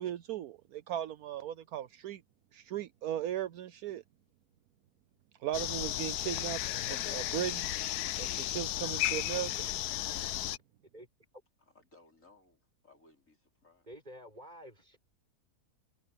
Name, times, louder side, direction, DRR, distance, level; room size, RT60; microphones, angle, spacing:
voice 1, 0.0-2.2 2.5-4.0 5.4-6.6 6.9-7.7 8.2-9.7, right 11 dB, 75° right, 1.1 m, -37 dB
sound 1, 5.5-10.6, left 14 dB, 80° left, 1.2 m, -34 dB
voice 2, 11.6-13.9, left 2 dB, 55° left, 5.2 m, -63 dB
voice 3, 13.9-15.0, equal, 25° right, 7.0 m, -49 dB
omnidirectional pair, 1.7 m